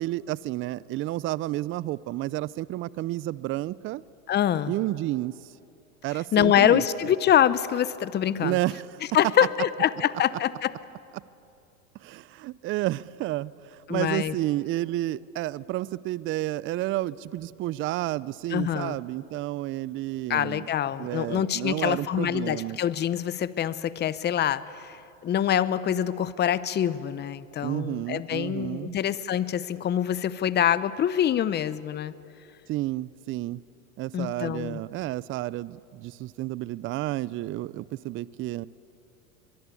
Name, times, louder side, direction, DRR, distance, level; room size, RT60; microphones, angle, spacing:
voice 1, 0.0-4.0 4.7-5.4 6.0-6.8 8.4-8.9 11.1-11.2 12.0-20.7 21.0-22.8 27.6-29.0 32.7-33.6 34.0-38.7, right 16 dB, 30° right, 21 dB, 0.5 m, -31 dB
voice 2, 4.3-4.7 6.3-8.6 9.1-10.7 13.9-14.3 18.5-19.0 20.3-32.1 34.1-34.8, left 10 dB, 25° left, 16 dB, 0.9 m, -25 dB
23.0 x 22.0 x 8.5 m, 2.6 s
hypercardioid pair, 105°, 42 cm